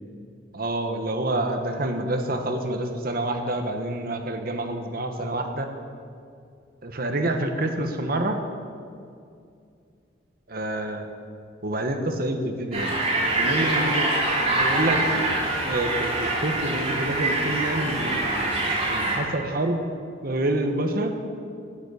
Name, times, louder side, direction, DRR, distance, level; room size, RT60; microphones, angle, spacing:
voice 1, 0.5-5.7 6.8-8.4 10.5-11.1 11.6-13.0 13.4-14.1 14.5-15.0 15.6-18.2 18.9-19.8 20.2-21.2, right 1 dB, 50° right, 5 dB, 1.3 m, -27 dB
sound 1, 12.7-19.2, right 2 dB, 35° right, 3.4 m, -25 dB
11.5 x 9.3 x 8.6 m, 2.4 s
head